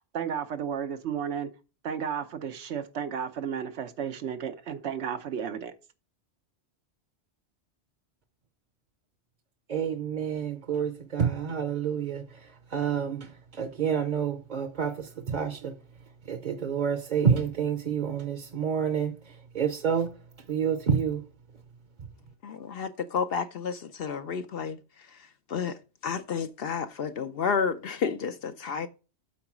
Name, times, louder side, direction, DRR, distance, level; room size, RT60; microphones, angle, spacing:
voice 1, 0.1-1.5 1.8-5.7, right 7 dB, 85° right, 1.1 m, -33 dB
voice 2, 9.7-12.2 12.7-13.3 13.6-15.7 16.3-19.1 19.5-20.1 20.5-21.2, right 7 dB, 45° right, 0.8 m, -28 dB
voice 3, 22.4-24.8 25.5-25.8 26.0-28.9, left 6 dB, 65° left, 0.8 m, -31 dB
8.4 x 3.9 x 6.0 m
omnidirectional pair, 1.1 m